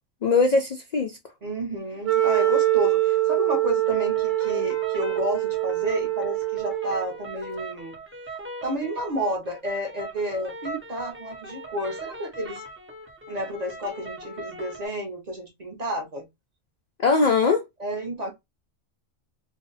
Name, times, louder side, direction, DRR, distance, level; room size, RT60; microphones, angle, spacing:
voice 1, 0.2-1.2 17.0-17.6, left 4 dB, 80° left, 0.3 m, -20 dB
voice 2, 1.4-7.9 8.6-12.6 13.3-16.3 17.8-18.3, equal, 40° right, 0.7 m, -31 dB
Wind instrument woodwind instrument, 2.0-7.1, right 15 dB, 85° right, 1.0 m, -24 dB
sound 1, 3.9-14.9, right 1 dB, 20° right, 0.3 m, -40 dB
2.5 x 2.0 x 3.8 m
omnidirectional pair, 1.3 m